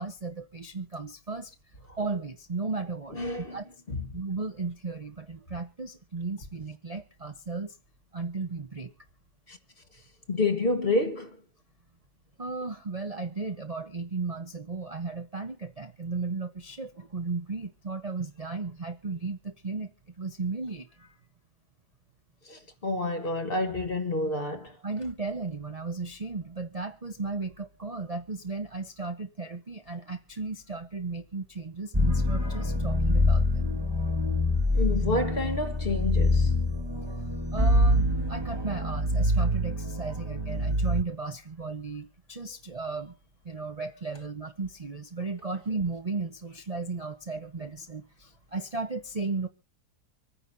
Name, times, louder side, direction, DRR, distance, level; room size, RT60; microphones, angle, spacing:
voice 1, 0.0-1.5 2.0-3.2 3.5-3.7 4.1-7.8 8.1-8.9 12.4-19.9 20.2-21.1 24.8-33.6 37.5-43.1 43.4-49.5, right 3 dB, 30° right, 0.7 m, -35 dB
voice 2, 3.1-3.6 3.9-4.0 9.5-9.6 10.3-11.4 22.4-24.7 34.7-36.5, left 2 dB, 35° left, 1.6 m, -29 dB
sound 1, 31.9-41.0, left 1 dB, 15° right, 1.5 m, -25 dB
26.0 x 9.9 x 2.7 m
omnidirectional pair, 1.7 m